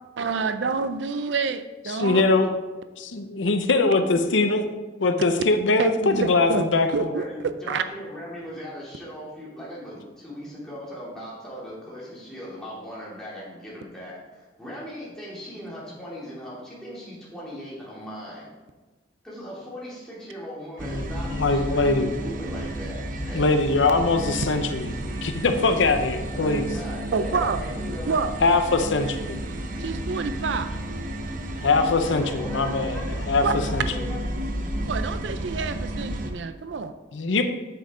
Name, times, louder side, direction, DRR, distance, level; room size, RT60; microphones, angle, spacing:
voice 1, 0.2-2.2 5.8-7.8 27.1-27.6 28.1-28.3 29.8-30.7 33.4-33.5 34.9-36.9, right 5 dB, 75° right, 11 dB, 0.5 m, -27 dB
voice 2, 2.0-2.5 3.0-4.6 5.0-7.1 20.9-22.1 23.3-24.9 25.2-26.7 28.4-29.4 31.6-33.5 33.7-33.8 37.1-37.4, left 3 dB, 85° left, 7 dB, 0.7 m, -22 dB
voice 3, 7.1-18.5 19.2-23.5 26.3-28.2 31.9-33.1 33.4-34.2, equal, 5° left, -8 dB, 3.1 m, -39 dB
sound 1, 20.8-36.3, right 1 dB, 45° right, 0.8 m, -32 dB
8.4 x 7.5 x 3.8 m, 1.2 s
head